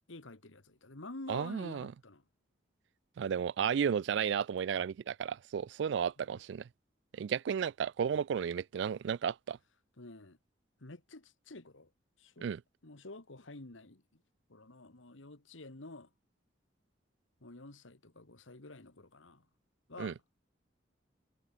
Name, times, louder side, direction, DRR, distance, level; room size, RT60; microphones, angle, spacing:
voice 1, 0.1-2.2 6.2-6.4 10.0-10.4 10.8-11.9 12.2-12.5 12.8-14.2 14.5-16.1 17.4-19.5 19.9-20.2, left 2 dB, 85° left, 2.0 m, -49 dB
voice 2, 1.3-1.9 3.2-6.7 7.1-9.6 12.4-12.6 20.0-20.1, right 7 dB, 65° right, 0.3 m, -33 dB
head